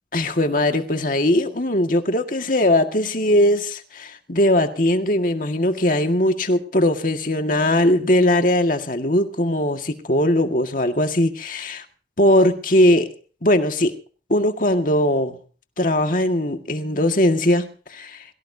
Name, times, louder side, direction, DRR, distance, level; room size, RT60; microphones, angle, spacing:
voice 1, 0.1-11.9 12.2-13.1 13.4-13.9 14.3-15.4 15.8-18.2, left 1 dB, 50° left, 6 dB, 1.9 m, -20 dB
22.5 x 17.5 x 2.8 m, 0.39 s
head